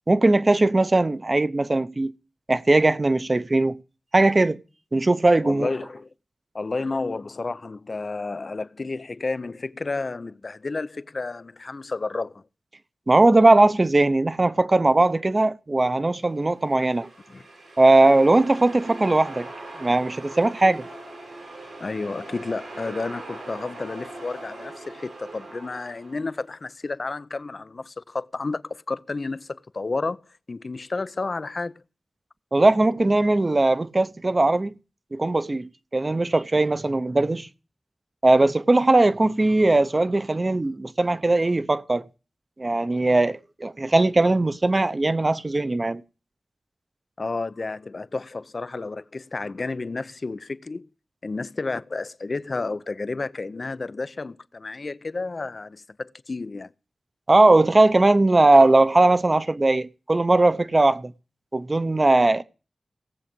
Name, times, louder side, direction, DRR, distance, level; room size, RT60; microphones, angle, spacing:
voice 1, 0.1-2.1 2.5-3.8 4.1-4.6 4.9-5.7 13.1-17.1 17.8-19.5 19.8-20.8 32.5-34.7 35.1-37.5 38.2-42.1 42.6-46.0 57.3-61.1 61.5-62.4, right 2 dB, 35° right, 0.8 m, -19 dB
voice 2, 5.4-6.1 6.5-12.4 17.3-17.4 21.8-30.2 30.5-31.8 47.2-50.9 51.2-56.7, left 3 dB, 55° left, 0.5 m, -31 dB
sound 1, 16.5-26.4, right 2 dB, 90° right, 5.5 m, -41 dB
17.5 x 7.4 x 5.2 m
wide cardioid pair, 60°, 0 cm